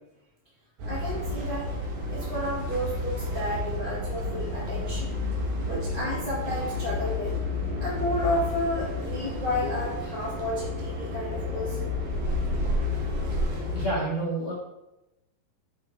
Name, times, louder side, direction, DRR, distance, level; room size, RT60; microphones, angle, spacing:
sound 1, 0.8-13.9, left 2 dB, 70° right, 3.1 m, -31 dB
voice 1, 0.9-1.7 2.1-5.1 5.6-7.3 7.8-11.9, left 1 dB, 40° left, -7 dB, 0.5 m, -31 dB
voice 2, 13.7-14.5, right 2 dB, 20° right, -7 dB, 1.7 m, -30 dB
10.5 x 4.7 x 3.3 m, 0.93 s
omnidirectional pair, 4.1 m